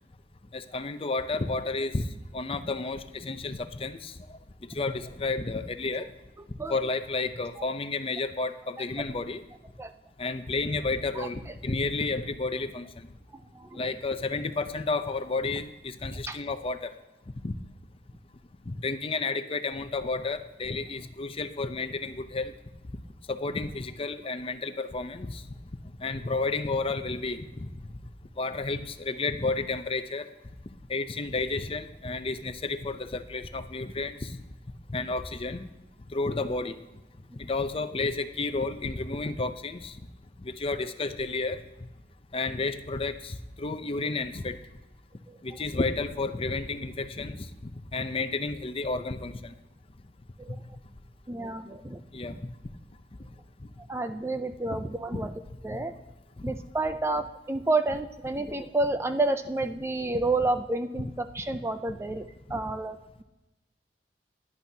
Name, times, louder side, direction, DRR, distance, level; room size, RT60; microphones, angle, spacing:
voice 1, 0.5-2.1 2.3-4.1 4.7-6.1 6.7-9.4 10.2-13.1 13.7-16.9 17.4-17.5 18.7-22.5 23.3-25.4 26.0-27.7 28.4-30.2 30.9-34.4 34.9-35.7 36.1-36.8 37.4-39.9 40.4-41.6 42.3-44.6 45.4-47.5 47.9-49.5 52.1-52.4 54.7-54.8 55.1-55.2 62.5-62.6, left 3 dB, 30° left, 10 dB, 0.6 m, -31 dB
voice 2, 51.3-52.0 53.9-55.3 55.6-55.9 56.4-63.2, right 2 dB, 15° right, 9 dB, 0.4 m, -30 dB
16.5 x 11.0 x 2.8 m, 1.0 s
head